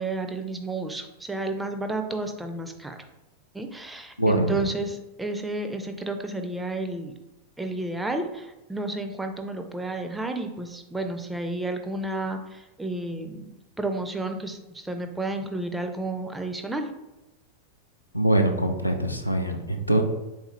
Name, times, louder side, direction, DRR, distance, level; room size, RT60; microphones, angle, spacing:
voice 1, 0.0-3.0 3.5-7.1 7.6-16.9, right 2 dB, 5° right, 5 dB, 0.4 m, -31 dB
voice 2, 4.2-4.5 18.1-20.0, right 1 dB, 90° left, 4 dB, 0.4 m, -23 dB
3.4 x 3.1 x 3.0 m, 0.99 s
figure-of-eight pair, 90°, 0 cm